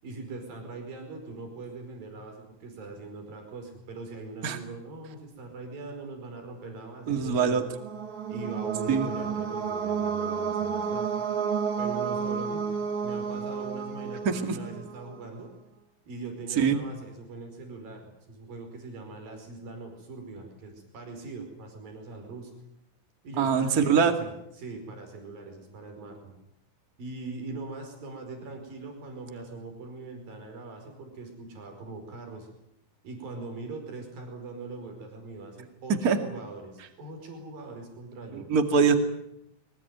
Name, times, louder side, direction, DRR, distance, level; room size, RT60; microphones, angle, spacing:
voice 1, 0.0-7.7 8.3-11.1 11.8-12.7 13.0-15.5 16.1-22.5 23.2-26.4 27.0-32.5 33.0-38.5, right 3 dB, 85° right, 4 dB, 6.8 m, -41 dB
voice 2, 7.1-7.6 8.9-9.1 14.2-14.6 16.6-16.8 23.4-24.1 36.0-36.2 38.3-38.9, right 6 dB, 30° right, 6 dB, 2.3 m, -23 dB
sound 1, 7.5-15.1, right 6 dB, 60° right, 3.3 m, -31 dB
23.5 x 21.0 x 9.4 m, 0.79 s
omnidirectional pair, 4.0 m